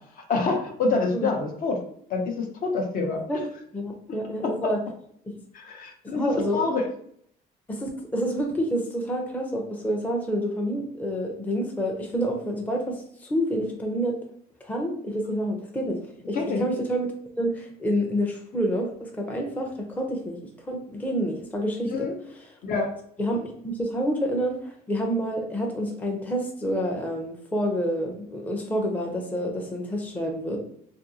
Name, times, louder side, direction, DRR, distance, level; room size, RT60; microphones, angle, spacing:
voice 1, 0.3-1.8 2.1-3.2 4.1-4.7 5.5-6.9 16.3-16.6 21.9-22.1 22.6-22.9, left 3 dB, 55° left, 2 dB, 0.7 m, -27 dB
voice 2, 3.7-4.8 6.1-6.6 7.7-13.0 13.2-14.1 14.6-16.0 16.3-17.1 17.4-20.4 20.7-22.1 23.2-30.6, equal, 10° left, 0 dB, 0.5 m, -28 dB
2.7 x 2.5 x 2.7 m, 0.66 s
cardioid pair, 110°, 17 cm